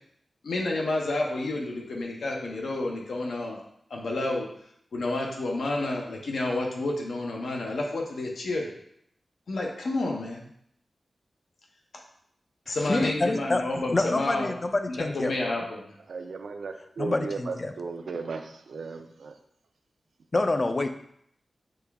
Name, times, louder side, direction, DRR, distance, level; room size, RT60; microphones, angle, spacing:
voice 1, 0.4-3.6 3.9-4.5 4.9-8.7 9.5-10.5 12.7-14.5 14.9-15.9, left 2 dB, 80° left, 0 dB, 0.7 m, -30 dB
voice 2, 12.7-15.5 17.0-17.7 20.3-20.9, left 2 dB, 30° left, 7 dB, 0.4 m, -27 dB
voice 3, 16.1-19.4, right 4 dB, 85° right, 6 dB, 0.4 m, -36 dB
6.5 x 2.3 x 3.4 m, 0.70 s
wide cardioid pair, 140°, 0 cm